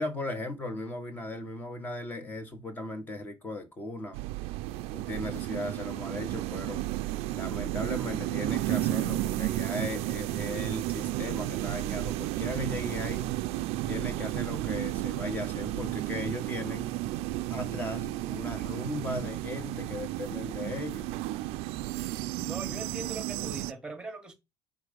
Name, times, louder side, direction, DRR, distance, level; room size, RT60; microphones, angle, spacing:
voice 1, 0.0-4.2 4.9-6.8 7.3-13.3 13.9-16.9 17.5-21.1, left 2 dB, 20° left, 1.3 m, -37 dB
sound 1, 4.1-23.7, right 16 dB, 75° right, 0.4 m, -33 dB
voice 2, 22.4-24.3, right 3 dB, 10° right, 1.4 m, -41 dB
5.0 x 3.8 x 5.2 m
cardioid pair, 160°, 10 cm